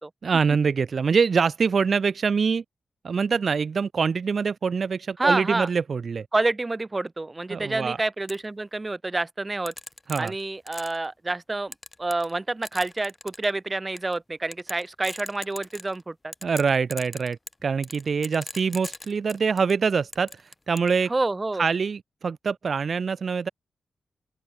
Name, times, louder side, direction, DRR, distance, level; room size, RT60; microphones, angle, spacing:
voice 1, 0.2-2.6 3.0-6.3 7.5-8.0 10.1-10.3 16.4-21.1 21.6-23.5, right 5 dB, 45° right, 2.2 m, -24 dB
voice 2, 5.2-5.7 6.3-9.7 10.2-11.7 12.0-16.3 21.1-21.6, right 2 dB, 20° right, 5.1 m, -28 dB
sound 1, 8.3-8.4 9.7-11.1 11.7-12.4 12.6-13.5 14.0-14.1 14.5-16.0 16.3-19.7 20.1-20.9, left 2 dB, 15° left, 2.4 m, -40 dB
open air
wide cardioid pair, 165°, 0 cm